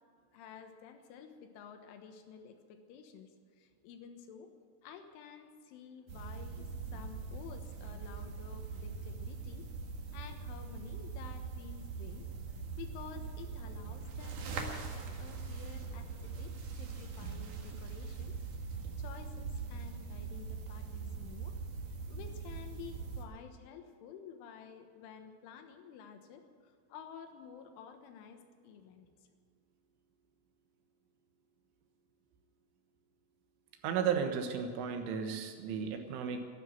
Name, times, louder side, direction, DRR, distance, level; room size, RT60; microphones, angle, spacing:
voice 1, 0.3-4.5 4.8-9.7 10.1-12.3 12.8-18.3 18.7-29.1, left 7 dB, 85° left, 6 dB, 3.8 m, -51 dB
sound 1, 6.1-23.2, right 5 dB, 55° right, 2.5 m, -42 dB
voice 2, 33.8-36.4, right 7 dB, 90° right, 5 dB, 3.9 m, -34 dB
12.5 x 12.5 x 9.1 m, 2.1 s
omnidirectional pair, 5.5 m